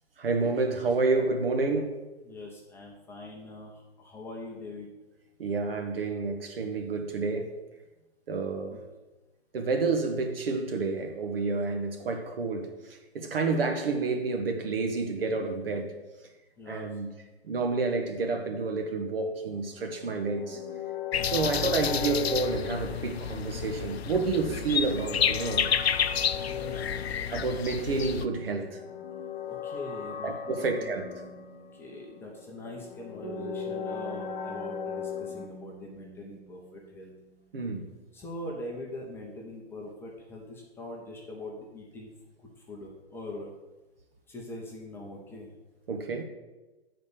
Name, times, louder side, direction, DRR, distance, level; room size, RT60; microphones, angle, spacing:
voice 1, 0.2-2.0 5.4-7.6 8.3-8.8 9.5-15.9 16.7-17.1 17.4-20.6 21.2-25.7 26.7-26.8 27.3-28.8 30.2-31.0 37.5-37.9 45.9-46.2, right 4 dB, 65° right, 1.3 m, -29 dB
voice 2, 2.2-4.9 8.7-8.9 16.6-17.0 21.2-21.3 26.3-26.9 29.5-31.0 31.7-37.1 38.1-42.1 42.4-43.5 44.3-45.5, left 1 dB, 5° left, 0.7 m, -42 dB
sound 1, 19.7-35.5, left 8 dB, 45° left, 1.0 m, -39 dB
sound 2, 21.1-28.3, left 8 dB, 75° left, 0.6 m, -30 dB
sound 3, 33.2-37.5, right 6 dB, 35° right, 0.8 m, -44 dB
8.5 x 4.2 x 6.8 m
hypercardioid pair, 135°, 32 cm